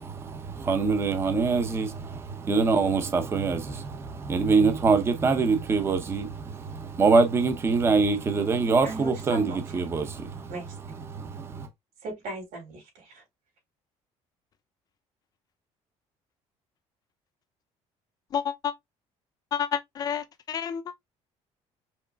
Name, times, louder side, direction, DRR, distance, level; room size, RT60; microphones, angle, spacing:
voice 1, 0.0-11.7, right 4 dB, 20° right, 0.7 m, -25 dB
voice 2, 8.8-9.6 10.5-10.6 12.0-13.2, right 2 dB, 75° right, 3.9 m, -37 dB
voice 3, 18.3-18.7 19.5-20.9, left 8 dB, 30° left, 0.5 m, -30 dB
5.8 x 4.0 x 2.3 m
cardioid pair, 180°, 12 cm